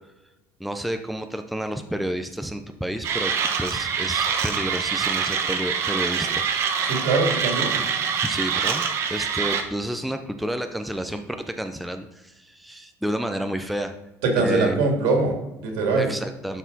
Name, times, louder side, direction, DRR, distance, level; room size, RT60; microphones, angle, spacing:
voice 1, 0.6-6.9 8.2-8.8 9.1-13.9 14.4-14.9 16.0-16.6, equal, ahead, 6 dB, 0.4 m, -30 dB
Mechanisms, 3.0-9.6, right 6 dB, 40° right, 0.9 m, -25 dB
voice 2, 6.8-7.8 14.2-16.1, right 3 dB, 75° right, 2 dB, 2.5 m, -23 dB
11.5 x 4.2 x 4.0 m, 1.0 s
cardioid pair, 155°, 7 cm